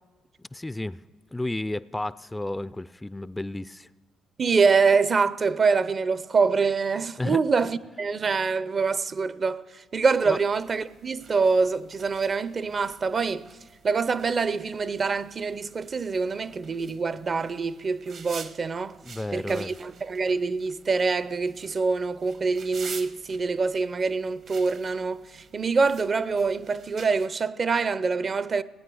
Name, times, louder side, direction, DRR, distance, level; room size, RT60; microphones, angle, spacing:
voice 1, 0.4-1.0 1.3-3.9 7.2-7.4 10.3-10.4 19.0-19.7, left 2 dB, 15° left, 0.3 m, -32 dB
voice 2, 4.4-13.5 13.8-19.0 19.3-28.6, right 4 dB, 45° right, 0.5 m, -25 dB
sound 1, 9.9-27.3, right 6 dB, 60° right, 1.0 m, -48 dB
17.5 x 9.1 x 6.2 m
hypercardioid pair, 55°, 0 cm